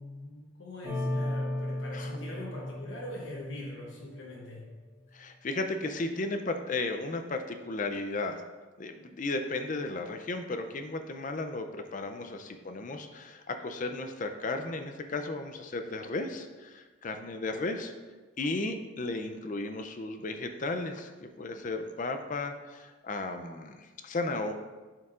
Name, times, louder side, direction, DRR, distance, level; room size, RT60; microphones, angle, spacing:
voice 1, 0.0-4.7, left 1 dB, 70° left, -3 dB, 0.9 m, -42 dB
sound 1, 0.8-4.3, left 1 dB, 15° right, 1.0 m, -35 dB
voice 2, 5.1-8.4 8.8-17.9 18.4-24.5, left 2 dB, 40° left, 7 dB, 0.4 m, -34 dB
10.5 x 4.5 x 2.5 m, 1.3 s
head